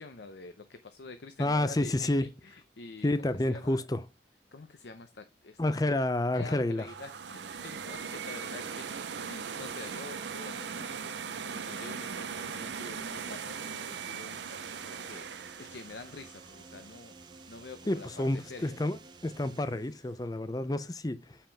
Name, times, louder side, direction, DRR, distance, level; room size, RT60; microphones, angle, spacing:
voice 1, 0.0-3.8 4.5-5.6 6.3-8.8 9.2-17.1 17.5-18.1 18.4-18.8, left 3 dB, 75° left, 0.7 m, -47 dB
voice 2, 1.4-2.3 3.0-4.0 5.6-6.9 17.9-19.0 19.2-21.4, left 1 dB, 20° left, 0.5 m, -29 dB
sound 1, 6.8-17.8, right 6 dB, 85° right, 0.7 m, -40 dB
sound 2, 13.2-19.7, right 3 dB, 25° right, 0.6 m, -53 dB
7.1 x 5.7 x 3.4 m
head